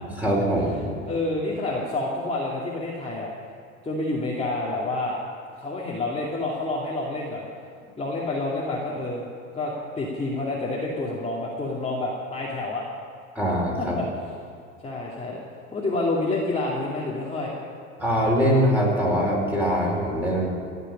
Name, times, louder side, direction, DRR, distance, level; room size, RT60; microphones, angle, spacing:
voice 1, 0.2-1.0 13.3-14.0 18.0-20.5, equal, 5° right, -3 dB, 4.9 m, -22 dB
voice 2, 1.1-3.3 3.8-5.2 5.5-7.4 8.0-9.3 9.5-12.8 13.8-14.1 14.8-15.4 15.7-17.5, left 2 dB, 15° left, -5 dB, 2.5 m, -28 dB
17.0 x 6.9 x 9.9 m, 2.3 s
hypercardioid pair, 90°, 39 cm